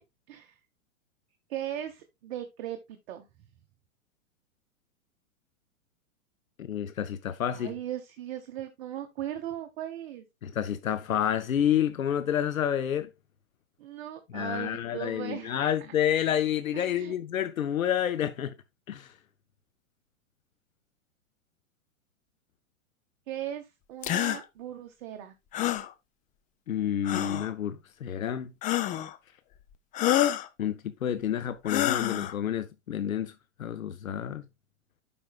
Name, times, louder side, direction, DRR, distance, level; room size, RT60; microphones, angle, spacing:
voice 1, 0.3-0.6 1.5-3.3 7.5-10.2 13.8-15.9 16.7-17.1 23.3-25.3, right 11 dB, 50° right, 1.1 m, -38 dB
voice 2, 6.6-7.7 10.4-13.1 14.3-18.5 18.9-19.1 26.7-28.5 30.6-33.3 33.6-34.5, left 10 dB, 90° left, 0.7 m, -29 dB
sound 1, 24.0-24.4 25.5-25.9 27.0-27.5 28.6-29.1 29.9-30.5 31.7-32.3, left 13 dB, 20° left, 0.5 m, -27 dB
12.0 x 5.2 x 2.3 m
hypercardioid pair, 110°, 40 cm